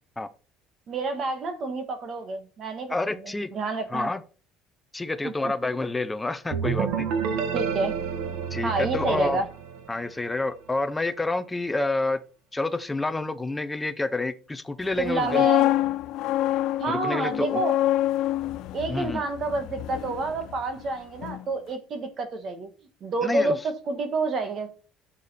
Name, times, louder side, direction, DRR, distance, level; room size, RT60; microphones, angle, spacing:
voice 1, 0.9-4.1 5.2-5.5 7.5-8.0 8.6-9.4 15.0-15.7 16.8-17.7 18.7-22.7 23.0-24.7, right 3 dB, 35° right, 9 dB, 1.4 m, -29 dB
voice 2, 2.9-3.5 3.9-4.2 4.9-7.1 8.5-9.4 9.9-12.2 12.5-15.5 16.9-17.6 18.9-19.2 23.2-23.6, left 2 dB, 10° left, 12 dB, 0.6 m, -28 dB
sound 1, 6.5-10.2, right 7 dB, 65° right, 1.4 m, -29 dB
sound 2, 15.0-20.9 21.2-21.4, left 14 dB, 55° left, 0.5 m, -26 dB
9.7 x 6.7 x 4.2 m, 0.38 s
cardioid pair, 170°, 0 cm